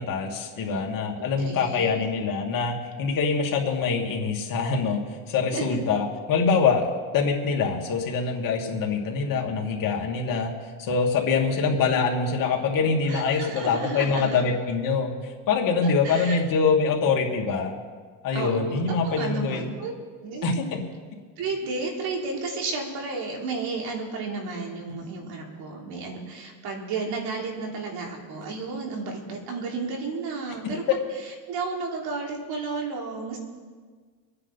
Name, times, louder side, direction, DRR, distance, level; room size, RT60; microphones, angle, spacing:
voice 1, 0.0-5.0 5.3-10.5 10.8-15.1 15.5-17.7 18.2-19.7 20.4-20.8, left 5 dB, 55° left, 0 dB, 2.6 m, -24 dB
voice 2, 1.2-2.0 5.5-5.8 13.1-14.4 15.8-16.4 18.3-19.9 20.2-20.5 21.4-30.8 31.5-33.4, right 4 dB, 65° right, 0 dB, 3.6 m, -32 dB
26.5 x 9.6 x 4.2 m, 1.5 s
cardioid pair, 125°, 41 cm